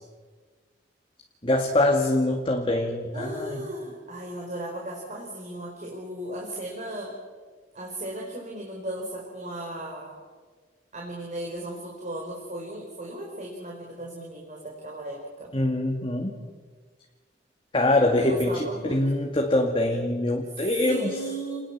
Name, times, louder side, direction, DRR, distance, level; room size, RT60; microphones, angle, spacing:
voice 1, 1.4-3.6 15.5-16.3 17.7-21.1, left 1 dB, 30° left, 1 dB, 2.3 m, -24 dB
voice 2, 3.1-7.1 7.7-10.2 10.9-15.5 18.2-19.0 20.8-21.6, right 1 dB, 45° right, -1 dB, 4.8 m, -36 dB
29.0 x 20.5 x 7.5 m, 1.5 s
head